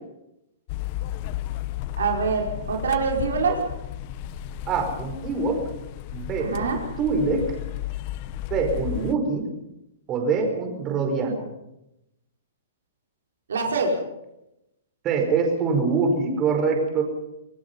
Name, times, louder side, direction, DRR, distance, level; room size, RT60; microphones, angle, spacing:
sound 1, 0.7-9.1, left 13 dB, 40° left, 1.0 m, -33 dB
voice 1, 2.0-3.6 6.4-6.8 13.5-13.9, right 5 dB, 90° right, 1 dB, 5.2 m, -24 dB
voice 2, 4.7-5.6 6.1-7.4 8.5-9.4 10.1-11.5 15.0-17.0, right 4 dB, 25° right, 3 dB, 5.1 m, -24 dB
26.5 x 18.0 x 5.6 m, 0.87 s
hypercardioid pair, 150°, 0 cm